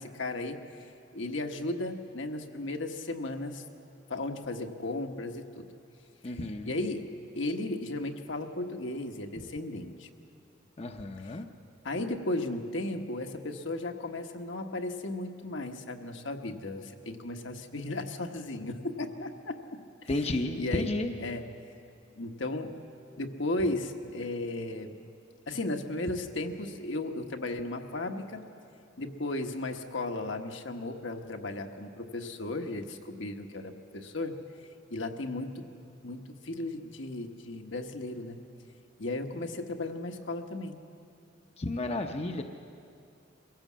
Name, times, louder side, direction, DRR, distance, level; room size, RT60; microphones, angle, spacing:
voice 1, 0.0-3.6 4.1-5.7 6.2-7.0 7.4-10.1 11.2-11.4 11.8-19.6 20.0-20.3 20.5-20.9 21.2-21.4 22.2-22.8 23.2-25.0 25.5-28.4 29.0-34.4 34.9-35.7 36.0-38.4 39.0-40.8, left 2 dB, 75° left, 4 dB, 1.3 m, -35 dB
voice 2, 6.2-6.7 10.8-11.5 20.1-21.1 41.6-42.4, left 2 dB, 35° left, 5 dB, 0.7 m, -32 dB
23.5 x 17.0 x 7.4 m, 2.6 s
head